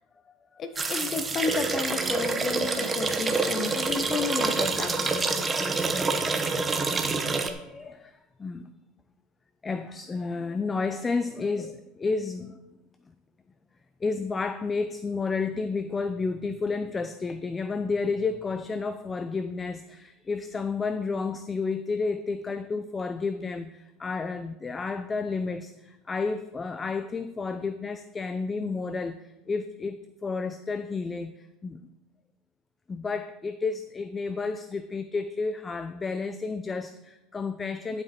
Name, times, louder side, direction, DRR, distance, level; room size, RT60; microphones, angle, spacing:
voice 1, 0.6-5.4, left 5 dB, 35° left, 10 dB, 1.0 m, -32 dB
sound 1, 0.8-7.5, right 3 dB, 20° right, 1.0 m, -27 dB
voice 2, 3.4-4.7 5.1-6.8 7.2-8.7 9.6-12.6 14.0-31.8 32.9-38.0, left 4 dB, 20° left, 11 dB, 0.5 m, -32 dB
11.0 x 7.8 x 4.4 m, 0.97 s
supercardioid pair, 120°, 0 cm